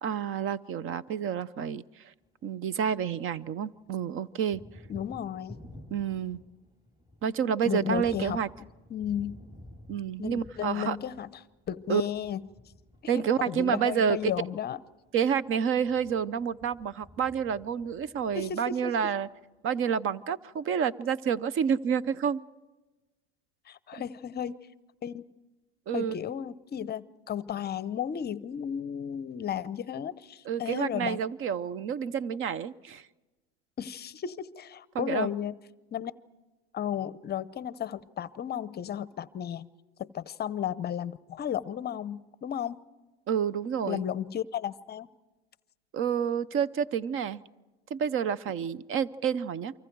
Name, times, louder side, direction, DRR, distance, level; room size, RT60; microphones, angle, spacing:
voice 1, 0.0-1.8 2.4-4.6 5.9-6.4 7.2-8.5 9.9-11.0 11.9-12.0 13.1-14.3 15.1-19.3 19.6-22.4 23.9-24.0 25.9-26.1 30.5-33.0 34.9-35.3 43.3-44.0 45.9-47.4 47.9-49.7, right 7 dB, 40° right, 20 dB, 0.7 m, -29 dB
Thunder, 2.3-3.5 3.7-19.0, left 1 dB, 10° right, 3.3 m, -52 dB
voice 2, 4.9-5.6 7.6-8.4 8.9-9.4 10.2-12.4 13.0-14.8 18.3-19.1 23.7-24.7 25.0-25.3 25.9-31.2 33.8-35.6 35.9-36.1 36.7-39.7 40.0-42.8 43.9-45.1, left 9 dB, 30° left, 17 dB, 0.7 m, -34 dB
29.5 x 24.5 x 4.7 m, 1.2 s
supercardioid pair, 100°, 34 cm